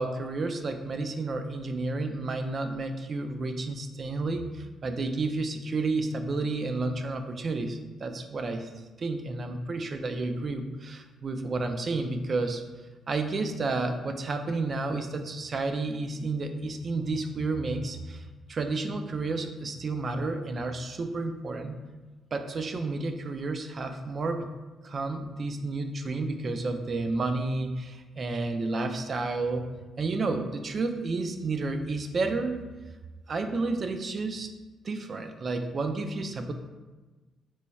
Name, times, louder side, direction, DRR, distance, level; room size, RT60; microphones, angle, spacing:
voice 1, 0.0-8.7 9.0-12.6 13.1-21.8 22.3-24.5 24.8-32.7 33.3-34.5 34.8-36.5, right 3 dB, 45° right, 7 dB, 0.3 m, -31 dB
3.1 x 2.3 x 4.0 m, 1.2 s
cardioid pair, 90°, 0 cm